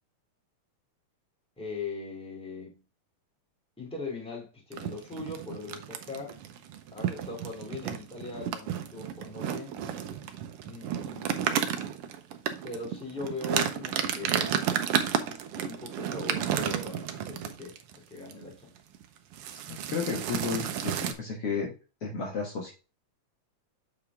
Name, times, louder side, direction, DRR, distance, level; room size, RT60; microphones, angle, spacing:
voice 1, 1.6-2.8 3.8-6.4 6.9-9.8 10.6-11.5 12.6-14.7 15.2-18.7, left 3 dB, ahead, 2.4 m, -40 dB
sound 1, 4.7-18.0 18.3-18.5 18.8-19.0 19.3-21.1, right 9 dB, 75° right, 1.4 m, -32 dB
voice 2, 19.7-21.7 22.0-22.7, left 5 dB, 55° left, 2.3 m, -33 dB
7.3 x 5.1 x 3.4 m
omnidirectional pair, 3.4 m